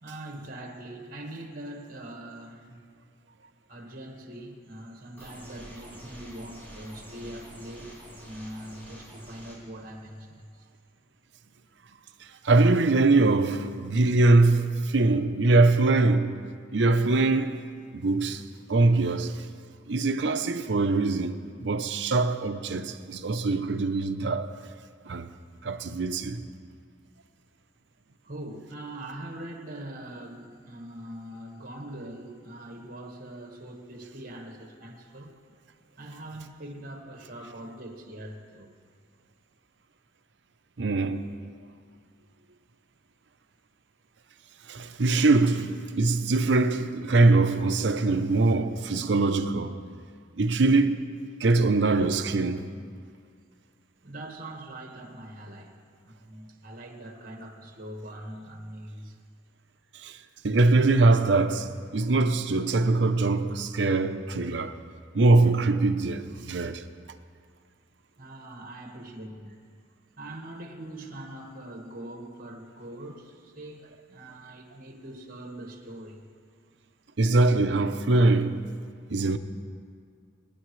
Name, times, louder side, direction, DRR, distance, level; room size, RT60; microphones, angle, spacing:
voice 1, 0.0-2.8 3.7-7.9 8.2-10.7 28.2-35.3 36.0-38.8 54.0-55.8 56.0-59.2 68.2-69.7 70.2-76.2, right 1 dB, 50° right, 1.5 m, -42 dB
sound 1, 5.2-9.6, equal, 10° left, 3.1 m, -46 dB
voice 2, 12.2-16.4 16.7-17.6 17.9-18.4 18.7-19.5 19.9-24.6 25.1-25.3 25.6-26.5 40.8-41.3 44.7-49.8 50.4-51.0 51.4-52.7 59.9-64.8 65.1-66.9 77.2-78.7 79.1-79.4, right 3 dB, 65° right, 0.6 m, -23 dB
26.0 x 9.9 x 3.2 m
head